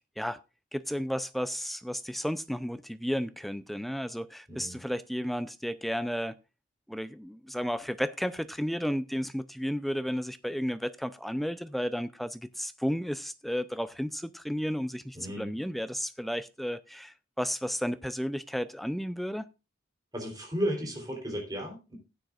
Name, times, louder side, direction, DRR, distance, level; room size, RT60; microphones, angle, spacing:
voice 1, 0.7-6.3 6.9-19.5, equal, ahead, 0.4 m, -33 dB
voice 2, 15.1-15.5 20.1-22.0, equal, 20° right, 3.3 m, -34 dB
15.5 x 9.3 x 2.4 m
head